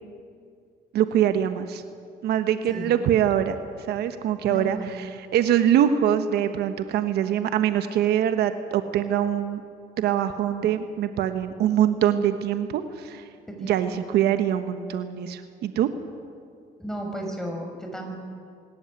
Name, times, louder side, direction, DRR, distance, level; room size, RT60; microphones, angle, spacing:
voice 1, 0.9-1.8 2.2-3.6 3.9-9.6 10.0-13.2 13.6-15.9, right 10 dB, 75° right, 9 dB, 1.2 m, -23 dB
voice 2, 4.5-4.9 13.6-14.0 16.8-18.2, right 1 dB, 5° left, 2 dB, 5.9 m, -34 dB
25.0 x 14.0 x 9.7 m, 2.3 s
cardioid pair, 110°, 17 cm